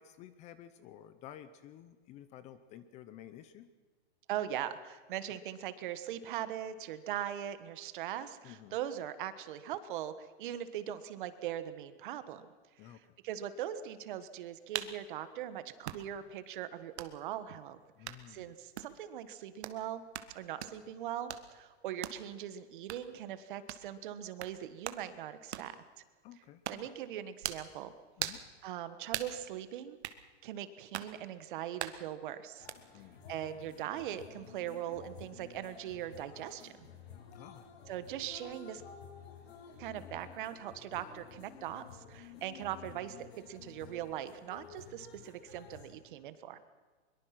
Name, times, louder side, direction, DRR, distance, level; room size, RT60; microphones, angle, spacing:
voice 1, 0.0-3.7 8.4-8.8 12.8-13.2 18.0-18.5 26.2-26.9 28.2-28.4 32.9-33.2 37.3-37.7, left 11 dB, 20° left, 13 dB, 0.7 m, -52 dB
voice 2, 4.3-12.5 12.8-17.8 18.1-25.7 26.7-27.9 28.6-30.0 30.4-32.7 33.3-36.9 37.9-38.8 39.8-46.6, right 11 dB, 50° right, 12 dB, 1.5 m, -41 dB
sound 1, 14.7-15.0 15.8-16.0 17.0-17.1 18.0-18.2 18.8-18.9 19.6-19.8 20.1-20.3 20.6-20.8 21.3-21.5 22.0-22.2 22.9-23.0 23.7-23.9 24.4-24.5 24.8-25.0 25.5-25.7 26.6-26.9 27.4-27.7 28.2-28.5 29.1-29.4 30.0-30.2 30.9-31.1 31.8-32.0 32.7-32.8, right 10 dB, 80° right, 1.6 m, -39 dB
sound 2, 32.6-45.9, left 6 dB, 65° left, 4.7 m, -53 dB
22.5 x 22.5 x 6.0 m, 1.5 s
hypercardioid pair, 160°, 33 cm